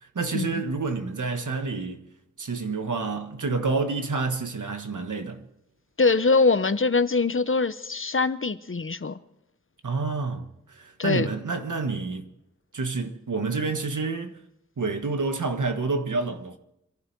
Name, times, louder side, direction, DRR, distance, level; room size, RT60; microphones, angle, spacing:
voice 1, 0.0-2.1 2.4-5.5 9.8-12.3 12.7-14.4 14.8-16.6, right 4 dB, 85° right, 1.4 m, -28 dB
voice 2, 6.0-9.2 11.0-11.3, left 4 dB, 45° left, 0.8 m, -23 dB
26.5 x 11.5 x 4.6 m
wide cardioid pair, 70°, 30 cm